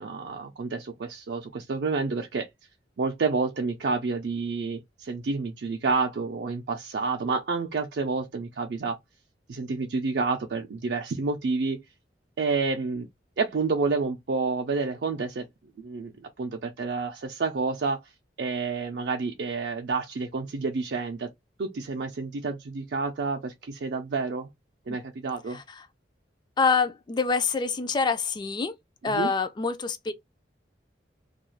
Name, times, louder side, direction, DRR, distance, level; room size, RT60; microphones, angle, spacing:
voice 1, 0.0-2.5 3.0-9.0 9.5-11.8 12.4-13.1 13.4-15.5 15.8-18.0 18.4-21.3 21.6-24.5 24.9-25.6 29.0-29.3, right 4 dB, 65° right, 0.4 m, -29 dB
voice 2, 26.6-28.7 29.0-30.1, left 4 dB, 25° left, 0.3 m, -26 dB
2.4 x 2.3 x 3.0 m
head